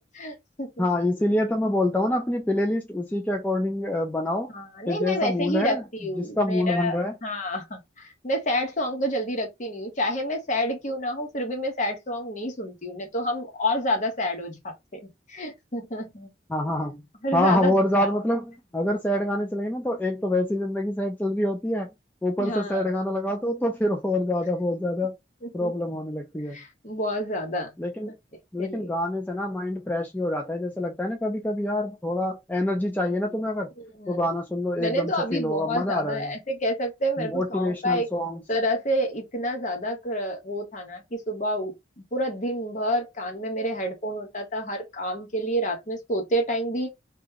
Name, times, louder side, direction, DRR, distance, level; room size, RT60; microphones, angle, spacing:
voice 1, 0.0-0.9 4.5-15.0 15.3-16.3 17.2-17.8 22.4-22.9 25.4-25.7 26.5-27.7 28.6-28.9 33.8-34.3 34.8-38.1 38.5-41.7 42.1-46.9, equal, 40° left, 1.0 m, -29 dB
voice 2, 0.8-4.5 4.9-5.8 6.2-7.1 16.5-17.0 17.3-18.4 18.7-21.9 22.2-25.2 25.5-26.6 27.8-28.1 28.5-33.7 34.1-36.3 37.2-38.4, left 1 dB, 10° left, 0.4 m, -26 dB
2.9 x 2.2 x 3.6 m
head